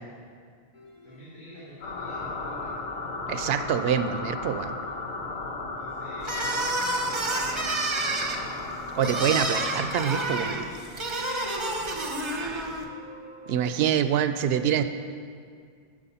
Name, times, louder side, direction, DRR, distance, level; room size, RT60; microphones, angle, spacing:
sound 1, 0.7-14.0, right 2 dB, 30° left, 1.3 m, -51 dB
voice 1, 1.0-2.7 5.8-8.4 12.2-12.8, equal, 60° left, -11 dB, 2.4 m, -48 dB
sound 2, 1.8-10.0, left 3 dB, 90° left, 1.2 m, -35 dB
voice 2, 3.3-4.8 8.9-10.6 13.5-14.8, right 8 dB, 75° right, 10 dB, 0.8 m, -25 dB
sound 3, 6.2-12.8, right 2 dB, 30° right, 0.8 m, -29 dB
11.0 x 6.6 x 5.6 m, 2.2 s
omnidirectional pair, 1.0 m